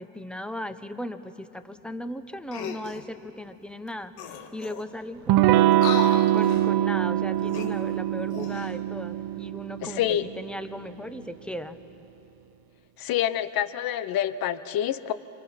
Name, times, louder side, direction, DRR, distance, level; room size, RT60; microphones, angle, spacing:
voice 1, 0.0-4.1 4.5-5.8 6.3-11.8, left 1 dB, ahead, 10 dB, 1.0 m, -37 dB
sound 1, 2.5-3.1 3.9-4.0 4.2-5.0 5.7-6.7 7.4-8.8 9.3-9.5, left 7 dB, 70° left, 1.7 m, -36 dB
Electric guitar / Strum, 5.3-10.7, right 13 dB, 50° right, 0.7 m, -23 dB
voice 2, 9.8-10.2 13.0-15.1, left 11 dB, 50° left, 14 dB, 1.0 m, -27 dB
27.5 x 23.5 x 5.9 m, 2.9 s
hypercardioid pair, 80°, 46 cm